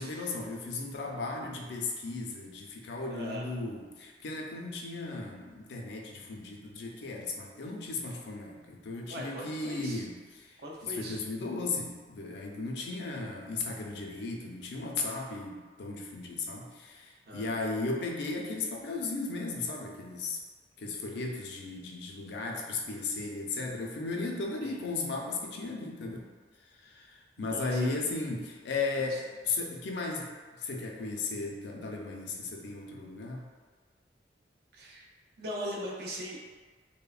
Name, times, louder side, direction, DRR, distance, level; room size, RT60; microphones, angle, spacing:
voice 1, 0.0-20.4 20.8-26.3 26.8-30.3 30.6-33.4, left 3 dB, 70° left, 0 dB, 0.4 m, -36 dB
voice 2, 3.1-3.4 9.1-10.0 10.6-11.2 17.3-17.5 24.6-24.8 27.4-27.9 29.1-29.2 29.5-29.6 34.7-35.1 35.4-36.4, equal, 65° right, -2 dB, 0.4 m, -40 dB
3.1 x 2.1 x 2.3 m, 1.4 s
head